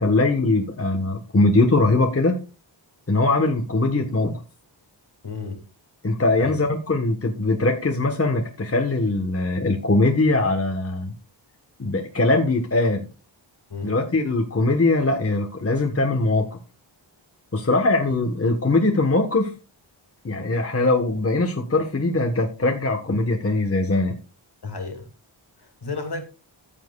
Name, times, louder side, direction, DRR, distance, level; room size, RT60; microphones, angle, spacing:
voice 1, 0.0-2.4 3.1-4.4 6.0-11.1 11.8-13.1 13.8-16.6 17.5-19.5 20.2-24.1, left 2 dB, 30° left, 1.3 m, -21 dB
voice 2, 5.2-5.6 6.4-6.5 13.7-13.9 24.6-25.1 25.6-26.2, left 4 dB, 55° left, 2.5 m, -32 dB
15.0 x 7.4 x 2.3 m
wide cardioid pair, 100°, 47 cm